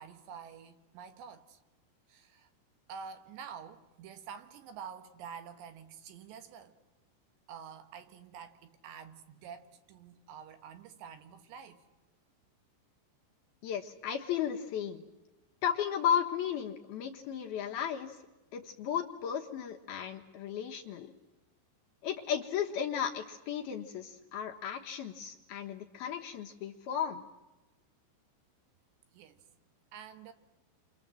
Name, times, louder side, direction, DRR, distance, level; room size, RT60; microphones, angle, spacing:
voice 1, 0.0-1.6 2.1-2.5 2.9-6.8 7.5-11.8 29.1-29.5 29.9-30.3, right 7 dB, 70° right, 3.4 m, -48 dB
voice 2, 13.6-15.1 15.6-18.2 18.5-21.1 22.0-27.2, left 8 dB, 70° left, 2.6 m, -34 dB
29.5 x 25.5 x 7.6 m
omnidirectional pair, 5.5 m